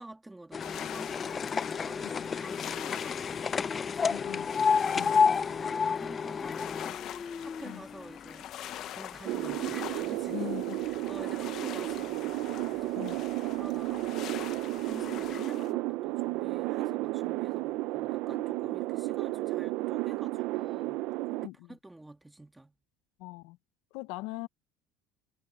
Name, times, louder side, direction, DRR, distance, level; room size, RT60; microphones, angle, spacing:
voice 1, 0.0-3.4 3.8-4.3 4.8-22.8, right 2 dB, 5° right, 1.8 m, -49 dB
sound 1, 0.5-8.8 9.1-10.0 10.7-10.8 11.1-11.2 11.5-11.6 12.4-12.6 13.1-13.2 13.9-14.0 14.5-14.6, left 5 dB, 20° left, 0.5 m, -30 dB
sound 2, 0.6-15.7, left 12 dB, 45° left, 0.9 m, -44 dB
voice 2, 4.1-4.5 4.9-5.2 7.6-7.8 10.3-10.9 13.0-13.2 21.4-21.7 23.2-23.6 23.9-24.5, left 20 dB, 75° left, 0.8 m, -40 dB
sound 3, 9.2-21.5, right 19 dB, 65° right, 0.6 m, -33 dB
cardioid pair, 150°, 0 cm